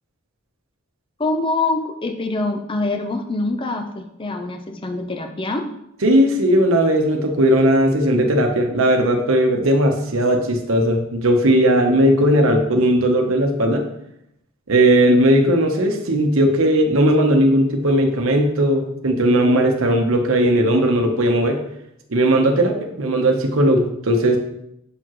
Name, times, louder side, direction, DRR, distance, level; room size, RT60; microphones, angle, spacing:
voice 1, 1.2-5.7, left 2 dB, 25° left, 6 dB, 0.5 m, -24 dB
voice 2, 6.0-13.8 14.7-21.6 22.1-24.4, right 1 dB, 70° right, 3 dB, 0.9 m, -17 dB
7.0 x 4.7 x 3.0 m, 0.79 s
head